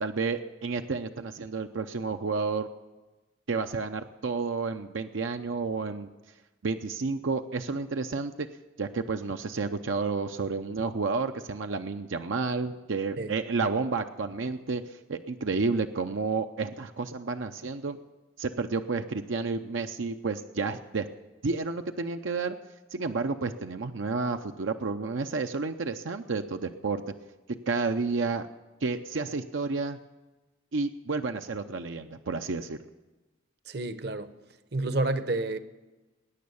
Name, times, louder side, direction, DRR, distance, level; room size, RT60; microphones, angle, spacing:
voice 1, 0.0-2.7 3.5-6.1 6.6-8.5 8.8-18.0 18.4-21.1 21.4-22.5 22.9-27.0 27.7-28.5 28.8-30.0 30.7-32.8, right 4 dB, 80° right, 0.6 m, -31 dB
voice 2, 33.7-34.3 34.7-35.6, right 2 dB, 55° right, 0.8 m, -29 dB
20.0 x 9.6 x 7.0 m
head